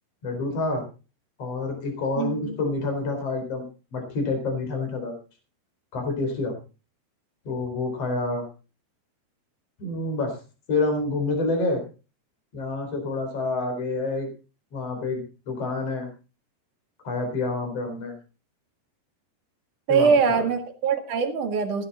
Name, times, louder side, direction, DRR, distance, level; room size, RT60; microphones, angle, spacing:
voice 1, 0.2-0.8 1.4-3.6 3.9-5.1 5.9-6.5 7.4-8.5 9.8-10.4 10.7-11.8 12.5-14.3 14.7-16.1 17.0-18.1 19.9-20.4, left 3 dB, 35° left, 4 dB, 5.1 m, -28 dB
voice 2, 2.2-2.5 19.9-21.9, right 6 dB, 55° right, 5 dB, 3.0 m, -23 dB
15.5 x 12.0 x 4.3 m, 0.33 s
omnidirectional pair, 4.9 m